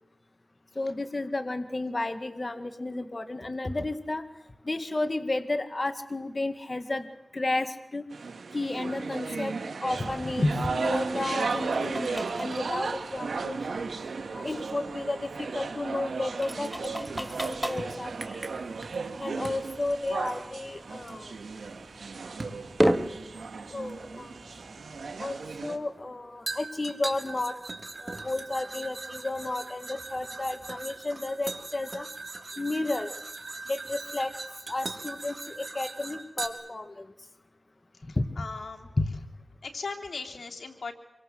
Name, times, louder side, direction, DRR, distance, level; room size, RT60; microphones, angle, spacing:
voice 1, 0.8-4.2 4.6-7.1 7.3-8.0 8.5-9.5 9.8-13.8 14.3-18.6 19.2-21.3 23.7-24.3 25.2-27.5 28.0-32.1 32.6-33.1 33.7-34.3 34.7-37.1 38.2-38.5 39.0-39.1, left 2 dB, 40° left, 9 dB, 1.9 m, -32 dB
sound 1, 8.1-25.8, right 4 dB, 90° right, 2.2 m, -35 dB
sound 2, 9.9-25.7, equal, 5° right, 2.4 m, -37 dB
sound 3, 17.1-19.1 19.4-19.7 21.1-21.2 22.4-22.6 23.9-24.0 26.5-36.5, right 3 dB, 50° right, 3.7 m, -40 dB
voice 2, 38.1-38.9 39.6-40.9, left 4 dB, 85° left, 3 dB, 3.1 m, -38 dB
27.0 x 23.5 x 7.8 m, 0.91 s
cardioid pair, 45°, 0 cm